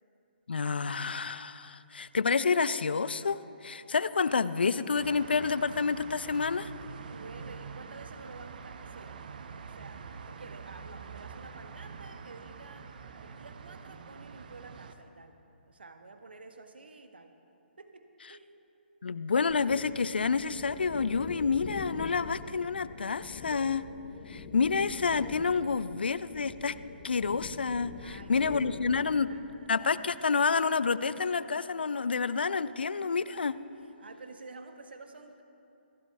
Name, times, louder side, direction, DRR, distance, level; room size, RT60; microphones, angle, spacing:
voice 1, 0.5-6.7 19.0-23.9 24.3-26.8 27.0-29.3 29.7-33.5, left 5 dB, 70° left, 16 dB, 0.4 m, -29 dB
sound 1, 4.9-14.9, right 5 dB, 50° right, 0.6 m, -45 dB
voice 2, 7.0-9.3 9.6-12.9 13.2-15.4 15.7-17.4 17.8-18.6 28.0-30.3 34.0-35.4, right 3 dB, 70° right, 7 dB, 1.0 m, -50 dB
sound 2, 19.5-29.2, left 4 dB, 40° left, 1.1 m, -44 dB
27.0 x 12.0 x 2.3 m, 2.8 s
figure-of-eight pair, 130°, 6 cm